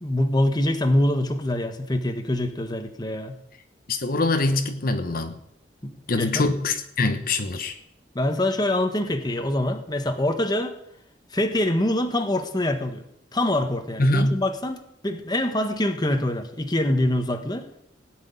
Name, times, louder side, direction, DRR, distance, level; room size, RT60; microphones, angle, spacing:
voice 1, 0.0-3.4 5.8-6.4 8.1-10.8 11.3-13.0 13.3-17.7, left 1 dB, 25° left, 6 dB, 1.3 m, -24 dB
voice 2, 3.9-5.4 6.1-7.8 14.0-14.4, left 2 dB, 55° left, 7 dB, 1.0 m, -23 dB
17.5 x 6.3 x 9.5 m, 0.75 s
head